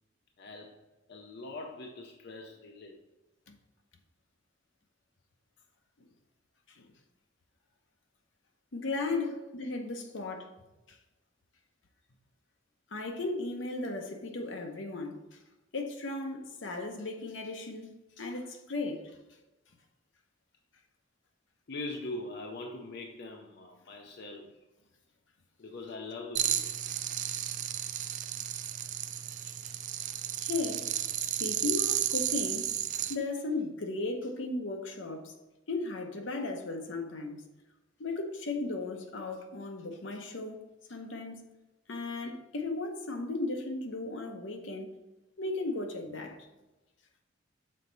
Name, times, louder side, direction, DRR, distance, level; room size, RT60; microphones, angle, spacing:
voice 1, 0.4-0.8 1.1-3.0 9.2-9.3 21.7-24.5 25.6-26.7, left 2 dB, 60° left, 0.6 m, -42 dB
voice 2, 8.7-10.5 10.9-11.0 12.9-15.4 15.7-19.2 29.4-29.7 30.4-30.9 31.4-32.8 33.1-35.3 35.7-37.4 38.0-40.6 40.9-41.4 41.9-44.9 45.4-46.4, left 3 dB, 80° left, 0.9 m, -36 dB
sound 1, 26.4-33.2, right 11 dB, 40° right, 0.4 m, -33 dB
6.5 x 4.2 x 4.0 m
head